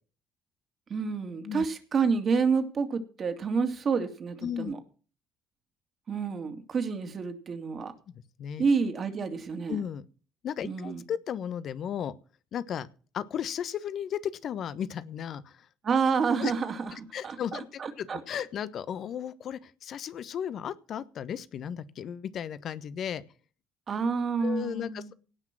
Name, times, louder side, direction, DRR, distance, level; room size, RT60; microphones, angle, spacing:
voice 1, 0.9-4.8 6.1-7.9 8.6-9.8 10.6-11.0 15.8-16.9 17.2-18.2 23.9-25.1, right 5 dB, 45° right, 7 dB, 2.5 m, -29 dB
voice 2, 4.4-4.7 8.1-8.2 8.4-8.6 9.7-10.1 10.4-12.1 12.5-12.9 13.1-15.7 16.4-16.5 16.9-23.2 24.4-25.1, left 9 dB, 55° left, 16 dB, 1.1 m, -35 dB
17.5 x 6.0 x 6.1 m, 0.38 s
hypercardioid pair, 55°, 0 cm